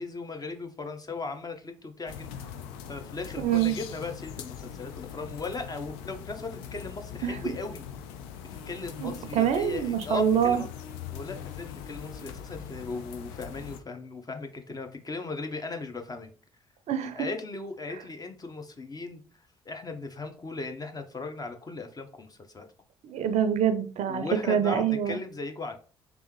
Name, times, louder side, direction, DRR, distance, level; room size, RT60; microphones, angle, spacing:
voice 1, 0.0-2.5 2.9-7.8 8.5-10.7 11.1-16.3 17.1-22.7 24.1-25.8, left 3 dB, 30° left, 6 dB, 0.7 m, -37 dB
sound 1, 2.1-13.8, left 8 dB, 75° left, 0.4 m, -41 dB
voice 2, 3.4-3.8 7.2-7.4 9.0-10.6 16.9-17.3 23.0-25.2, right 9 dB, 55° right, 9 dB, 0.5 m, -25 dB
3.4 x 2.6 x 3.1 m, 0.38 s
hypercardioid pair, 50°, 14 cm